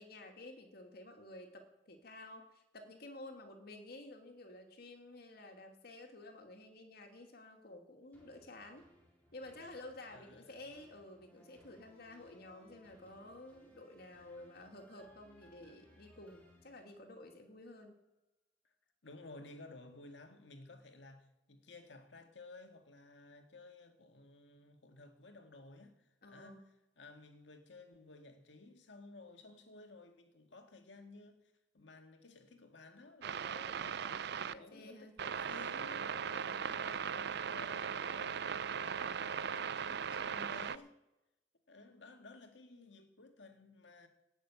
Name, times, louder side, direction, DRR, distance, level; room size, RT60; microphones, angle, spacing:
voice 1, 0.0-8.9 9.3-18.0 26.2-26.7 34.5-35.1 36.2-36.6, left 2 dB, 60° left, 2.4 m, -52 dB
sound 1, 8.1-17.5 18.0-18.1, left 1 dB, 10° left, 4.0 m, -65 dB
voice 2, 10.1-10.6 19.0-26.6 27.0-31.4 31.7-41.0 41.7-44.1, left 3 dB, 80° left, 1.8 m, -55 dB
sound 2, 33.2-34.5 35.2-40.8, right 7 dB, 65° right, 0.5 m, -38 dB
18.0 x 6.7 x 8.1 m
head